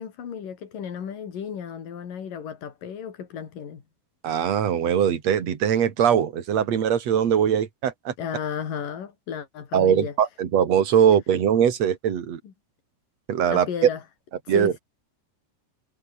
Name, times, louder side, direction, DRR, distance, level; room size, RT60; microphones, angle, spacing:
voice 1, 0.0-3.8 8.2-10.1 12.4-12.5 13.5-14.0 14.4-14.8, left 8 dB, 60° left, 4.5 m, -34 dB
voice 2, 4.2-8.1 9.7-12.4 13.3-13.7 14.5-14.7, right 8 dB, 50° right, 3.1 m, -21 dB
omnidirectional pair, 4.5 m